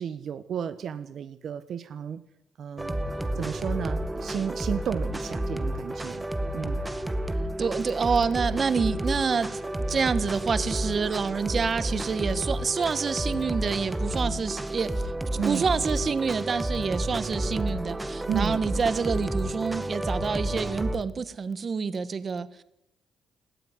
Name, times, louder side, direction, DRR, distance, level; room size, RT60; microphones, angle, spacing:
voice 1, 0.0-2.2 2.6-3.0 3.3-6.3 6.5-6.8 15.4-15.7 18.3-18.6, right 8 dB, 60° right, 1.2 m, -32 dB
sound 1, 2.8-21.0, right 1 dB, 15° right, 1.9 m, -31 dB
voice 2, 7.6-9.6 9.9-14.9 15.5-22.6, right 5 dB, 40° right, 1.5 m, -27 dB
18.5 x 14.5 x 9.9 m
cardioid pair, 90°, 0 cm